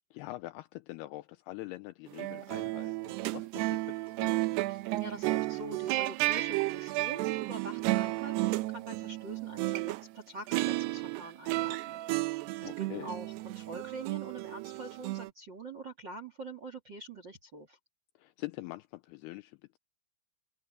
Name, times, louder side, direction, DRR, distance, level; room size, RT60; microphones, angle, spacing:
voice 1, 0.1-4.6 12.5-13.1 18.2-19.8, left 19 dB, 85° left, 2.3 m, -44 dB
sound 1, 2.1-10.0 10.5-15.3, right 19 dB, 80° right, 2.5 m, -33 dB
voice 2, 4.7-12.3 12.6-17.8, right 3 dB, 45° right, 1.4 m, -44 dB
omnidirectional pair, 5.3 m